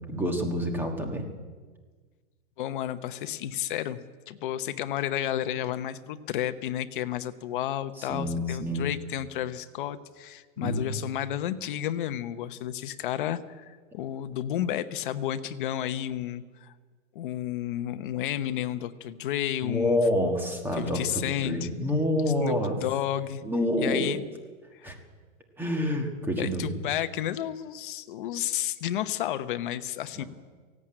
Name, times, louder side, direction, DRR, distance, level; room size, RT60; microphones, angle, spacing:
voice 1, 0.1-1.2 8.0-8.9 10.6-10.8 19.6-22.8 23.4-24.2 24.8-25.0 25.6-26.7 30.2-30.3, left 1 dB, 5° right, 3 dB, 1.4 m, -28 dB
voice 2, 2.6-16.7 17.1-20.0 20.8-21.7 22.4-23.4 23.8-24.2 24.7-24.9 26.4-30.2, left 11 dB, 40° left, 11 dB, 0.9 m, -31 dB
17.5 x 17.0 x 8.9 m, 1.5 s
supercardioid pair, 170°, 39 cm